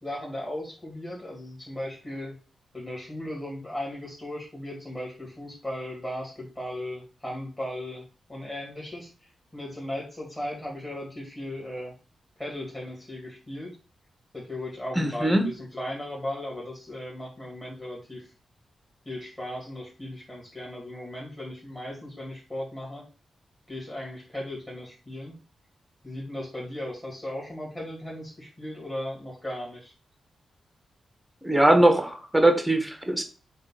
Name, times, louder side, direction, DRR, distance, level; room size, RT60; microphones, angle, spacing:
voice 1, 0.0-2.4 2.7-11.9 12.4-13.7 14.3-18.3 19.1-23.1 23.7-25.4 26.0-29.9, left 1 dB, 15° left, -5 dB, 2.4 m, -37 dB
voice 2, 14.9-15.4 31.4-33.2, right 1 dB, 5° right, 6 dB, 1.2 m, -21 dB
7.4 x 2.7 x 5.8 m, 0.34 s
wide cardioid pair, 160°, 0 cm